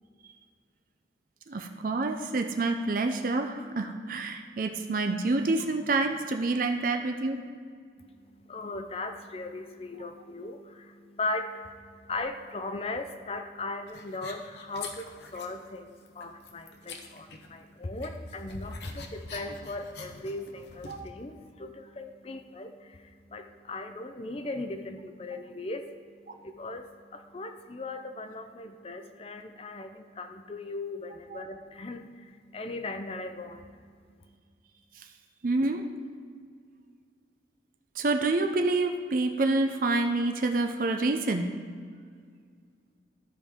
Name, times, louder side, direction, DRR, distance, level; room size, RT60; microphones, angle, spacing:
voice 1, 1.5-7.4 20.9-21.0 31.3-31.4 35.0-35.1 35.4-35.8 38.0-41.5, right 2 dB, 45° right, 5 dB, 0.5 m, -27 dB
voice 2, 8.0-34.4, left 2 dB, 30° left, 7 dB, 0.5 m, -38 dB
sound 1, 13.9-15.7 16.0-17.7 18.0-21.1, left 4 dB, 65° left, 0.9 m, -45 dB
14.5 x 5.1 x 3.6 m, 2.1 s
head